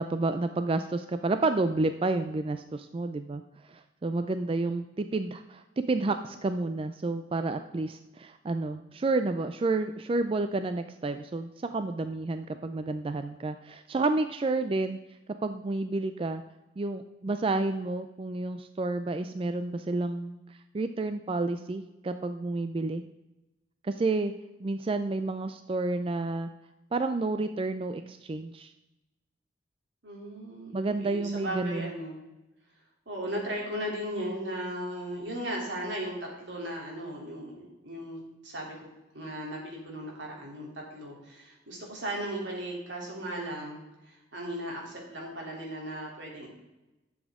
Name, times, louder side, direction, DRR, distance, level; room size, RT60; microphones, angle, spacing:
voice 1, 0.0-3.4 3.7-15.0 15.4-16.4 16.8-23.0 23.8-24.3 24.6-26.5 26.9-28.7 30.7-31.9, right 3 dB, 30° right, 9 dB, 0.4 m, -30 dB
voice 2, 30.0-32.2 33.1-38.9 39.1-43.8 44.0-46.5, right 1 dB, 80° right, -1 dB, 3.1 m, -37 dB
11.5 x 7.2 x 3.6 m, 0.99 s
head